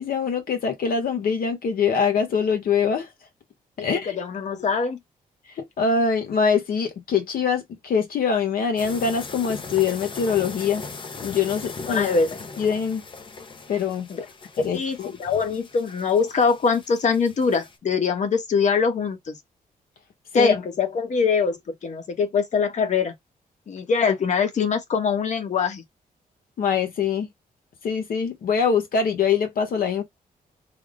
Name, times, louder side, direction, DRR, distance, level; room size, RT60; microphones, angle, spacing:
voice 1, 0.0-3.1 3.8-4.2 5.6-10.8 11.2-12.1 12.6-13.0 13.7-14.1 14.6-15.1 20.3-20.6 26.6-27.3 27.8-30.0, left 6 dB, 70° left, 1.0 m, -23 dB
voice 2, 4.1-5.0 11.9-12.4 14.1-14.2 14.7-19.4 20.3-23.1 23.7-25.8, left 5 dB, 50° left, 0.9 m, -23 dB
sound 1, 8.8-17.8, left 4 dB, 35° left, 0.6 m, -39 dB
3.4 x 2.0 x 3.5 m
cardioid pair, 125°, 15 cm